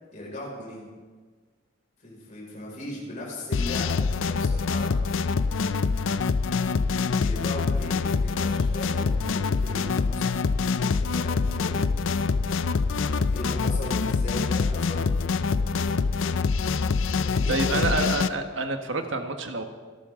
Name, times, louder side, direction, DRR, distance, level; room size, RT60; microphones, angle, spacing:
voice 1, 0.1-0.9 2.0-5.0 7.0-10.3 10.6-11.8 13.3-15.1 17.2-18.2, left 1 dB, 40° left, -4 dB, 5.4 m, -38 dB
sound 1, 3.5-18.3, left 4 dB, 80° left, 0.5 m, -25 dB
voice 2, 17.5-19.6, right 2 dB, 75° right, 6 dB, 1.4 m, -27 dB
26.5 x 12.0 x 3.8 m, 1.5 s
head